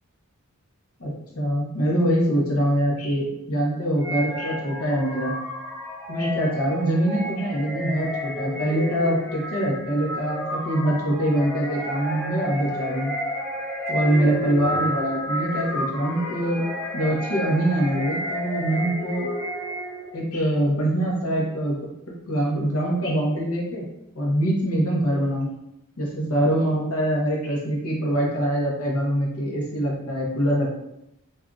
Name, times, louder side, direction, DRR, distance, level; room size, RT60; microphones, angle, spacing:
voice 1, 1.0-5.3 6.1-13.2 13.9-16.6 16.9-19.3 20.1-21.8 22.0-23.8 24.1-25.5 26.0-30.7, right 1 dB, 80° left, -2 dB, 0.9 m, -24 dB
sound 1, 4.0-20.2, equal, 10° left, 0.6 m, -31 dB
2.6 x 2.3 x 3.7 m, 0.82 s
head